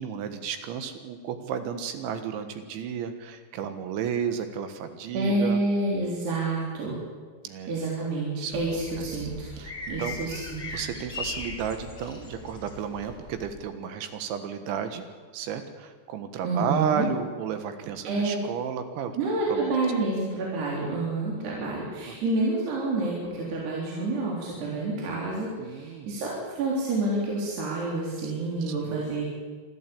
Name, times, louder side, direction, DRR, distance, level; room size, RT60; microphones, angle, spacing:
voice 1, 0.0-5.6 7.4-7.7 8.4-8.6 9.0-9.1 9.6-10.2 10.7-15.0 15.3-19.2 19.5-19.8 21.3-22.1 25.6-26.1 28.2-29.0, right 7 dB, 80° right, 8 dB, 3.8 m, -33 dB
voice 2, 5.1-7.0 7.7-9.5 9.9-10.6 16.4-17.1 18.0-18.4 19.2-29.2, right 2 dB, 65° right, -4 dB, 5.6 m, -28 dB
sound 1, 8.5-13.6, left 3 dB, 20° left, 3.8 m, -39 dB
25.0 x 14.0 x 8.6 m, 1.5 s
omnidirectional pair, 5.3 m